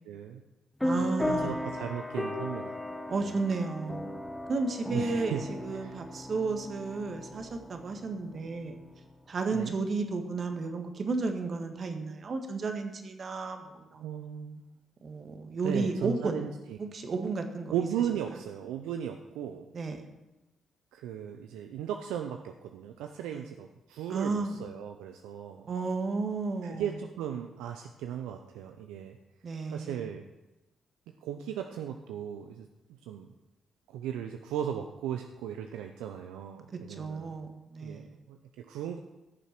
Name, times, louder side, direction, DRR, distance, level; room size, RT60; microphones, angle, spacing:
voice 1, 0.0-0.4 1.0-2.8 3.2-3.3 4.9-6.0 9.5-9.8 13.9-14.6 15.6-16.8 17.2-17.3 17.7-19.6 20.9-25.7 26.6-29.2 29.7-30.2 31.2-33.3 33.9-37.3 37.8-39.0, right 9 dB, 85° right, 5 dB, 0.5 m, -37 dB
sound 1, 0.8-8.9, left 1 dB, 10° left, 1.3 m, -36 dB
voice 2, 0.8-1.7 3.1-4.1 4.5-8.7 9.3-14.0 15.0-16.4 16.8-17.7 19.7-20.1 23.3-23.4 24.1-24.5 25.7-26.8 29.4-30.0 36.9-38.1, right 3 dB, 55° right, 5 dB, 1.5 m, -33 dB
14.5 x 6.9 x 4.4 m, 0.99 s
supercardioid pair, 55°, 0 cm